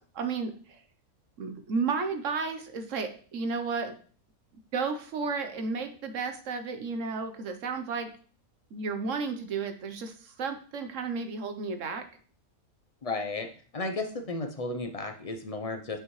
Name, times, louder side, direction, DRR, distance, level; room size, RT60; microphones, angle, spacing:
voice 1, 0.1-0.8 1.4-4.0 4.7-8.1 8.7-12.1, right 4 dB, 65° right, 7 dB, 1.1 m, -33 dB
voice 2, 13.0-13.5 13.7-16.0, left 2 dB, 55° left, 6 dB, 0.4 m, -33 dB
8.4 x 5.6 x 3.1 m, 0.42 s
omnidirectional pair, 1.5 m